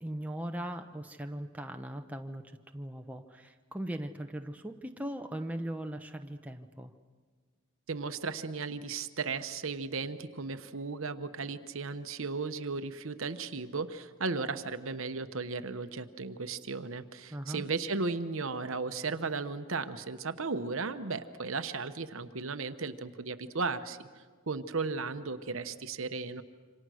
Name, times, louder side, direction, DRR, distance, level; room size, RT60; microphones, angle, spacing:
voice 1, 0.0-6.9 17.3-17.6, right 1 dB, 5° right, 4 dB, 0.8 m, -39 dB
voice 2, 7.9-24.0 24.5-26.4, right 4 dB, 65° right, 10 dB, 1.0 m, -35 dB
27.5 x 26.0 x 6.3 m, 1.5 s
head